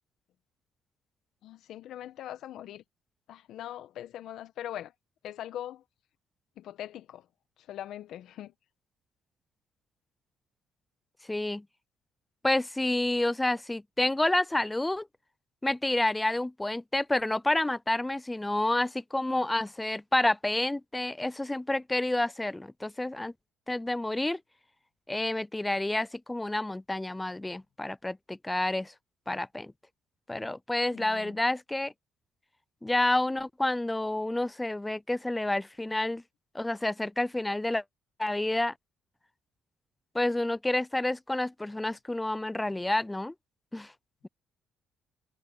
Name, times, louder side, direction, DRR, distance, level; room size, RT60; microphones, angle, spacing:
voice 1, 1.4-2.8 3.3-4.9 5.2-5.8 6.6-7.3 7.7-8.5 30.9-31.4, left 11 dB, 70° left, 1.1 m, -41 dB
voice 2, 11.3-11.6 12.4-15.1 15.6-23.3 23.7-24.4 25.1-28.9 29.3-29.7 30.3-31.9 32.8-36.2 36.5-37.8 38.2-38.7 40.1-43.3 43.7-43.9, left 1 dB, 10° left, 0.4 m, -29 dB
cardioid pair, 100°, 0 cm